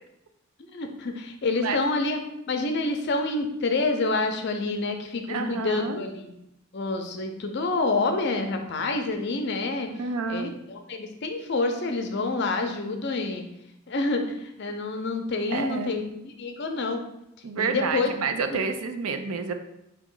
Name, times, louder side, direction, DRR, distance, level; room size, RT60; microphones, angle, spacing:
voice 1, 0.7-2.2 2.5-6.3 6.7-9.9 10.3-13.4 13.9-17.0 17.6-18.1 18.5-18.6, left 3 dB, 50° left, 5 dB, 0.5 m, -28 dB
voice 2, 1.5-1.8 5.3-6.0 9.9-10.5 15.5-16.0 17.4-19.5, right 5 dB, 85° right, 7 dB, 0.5 m, -29 dB
4.7 x 3.0 x 3.7 m, 0.84 s
head